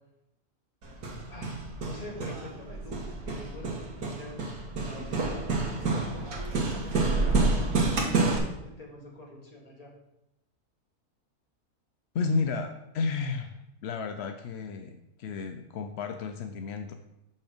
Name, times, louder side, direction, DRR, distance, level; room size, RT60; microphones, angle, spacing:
Hammer, 0.8-8.4, right 3 dB, 85° right, 1.7 m, -29 dB
voice 1, 1.3-9.9, left 1 dB, 25° left, -2 dB, 1.7 m, -46 dB
voice 2, 12.1-16.9, left 4 dB, 70° left, 6 dB, 0.6 m, -32 dB
6.5 x 5.5 x 5.1 m, 0.89 s
omnidirectional pair, 1.7 m